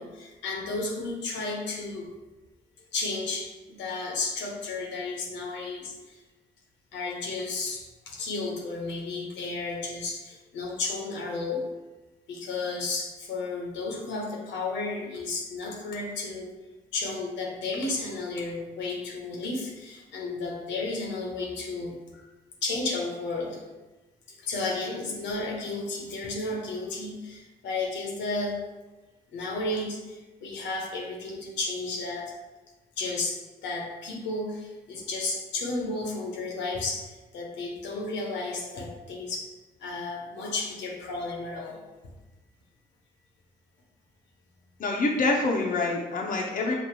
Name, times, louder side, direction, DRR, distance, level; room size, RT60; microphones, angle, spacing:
voice 1, 0.0-2.1 2.9-5.9 6.9-11.6 12.3-16.5 16.9-21.9 22.6-23.6 24.4-28.6 29.3-32.3 33.0-39.5 39.8-41.8, left 3 dB, 75° left, -1 dB, 0.9 m, -33 dB
voice 2, 44.8-46.7, left 3 dB, 45° left, 0 dB, 0.7 m, -26 dB
6.0 x 2.5 x 2.9 m, 1.1 s
hypercardioid pair, 50°, 19 cm